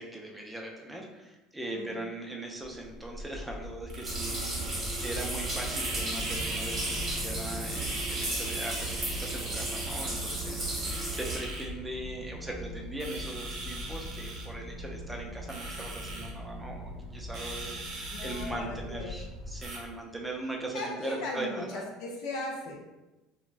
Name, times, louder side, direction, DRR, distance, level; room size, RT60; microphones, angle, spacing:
voice 1, 0.0-21.8, right 1 dB, 5° right, 0 dB, 0.4 m, -40 dB
sound 1, 2.6-19.8, right 2 dB, 45° right, 0.6 m, -41 dB
sound 2, 2.9-20.2, left 1 dB, 15° left, 0.8 m, -42 dB
sound 3, 4.0-11.4, right 2 dB, 25° right, 0.9 m, -34 dB
voice 2, 18.1-19.2 20.7-22.8, left 2 dB, 60° left, -1 dB, 0.5 m, -38 dB
3.2 x 2.0 x 2.4 m, 1.0 s
cardioid pair, 160°, 0 cm